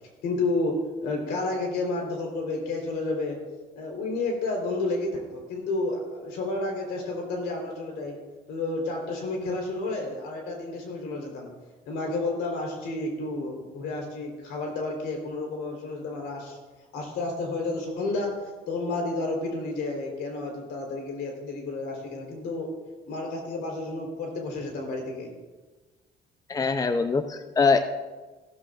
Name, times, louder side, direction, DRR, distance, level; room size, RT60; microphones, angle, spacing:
voice 1, 0.2-3.4 3.8-8.2 8.5-11.5 11.8-16.6 16.9-22.7 23.1-25.3, left 2 dB, 85° left, 1 dB, 4.1 m, -31 dB
voice 2, 26.5-27.8, left 4 dB, 20° left, 9 dB, 0.6 m, -23 dB
15.5 x 14.0 x 2.6 m, 1.3 s
cardioid pair, 110°, 17 cm